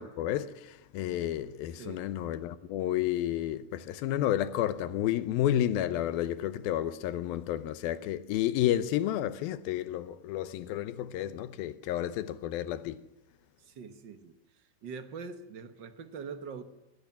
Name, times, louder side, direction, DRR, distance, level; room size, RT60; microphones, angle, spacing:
voice 1, 0.0-13.0, left 12 dB, 85° left, 2.7 m, -31 dB
voice 2, 1.8-2.1 13.6-14.4 14.8-16.6, right 5 dB, 80° right, 1.0 m, -43 dB
22.0 x 16.5 x 7.3 m
omnidirectional pair, 4.1 m